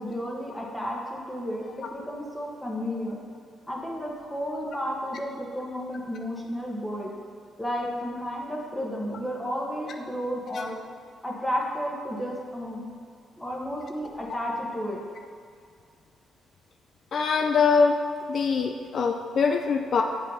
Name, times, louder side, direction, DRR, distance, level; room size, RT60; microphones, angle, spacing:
voice 1, 0.0-3.2 3.7-7.1 7.6-10.8 11.2-12.9 13.4-15.0, equal, 10° left, -3 dB, 1.3 m, -32 dB
voice 2, 17.1-18.0 18.3-20.0, left 5 dB, 55° left, 4 dB, 0.5 m, -23 dB
7.2 x 5.2 x 5.6 m, 2.3 s
cardioid pair, 90°, 0 cm